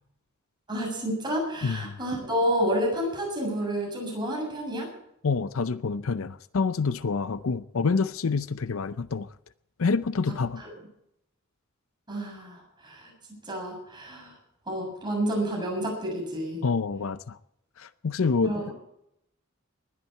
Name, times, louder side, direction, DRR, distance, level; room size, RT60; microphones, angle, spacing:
voice 1, 0.7-4.9 10.6-10.7 12.1-13.1 13.4-14.4 14.7-16.7 18.4-18.7, equal, 20° right, 7.2 m, -30 dB
voice 2, 1.6-2.0 5.2-9.3 9.8-10.6 16.6-17.4 17.8-18.5, left 4 dB, 70° left, 0.6 m, -27 dB
20.5 x 12.5 x 4.5 m
head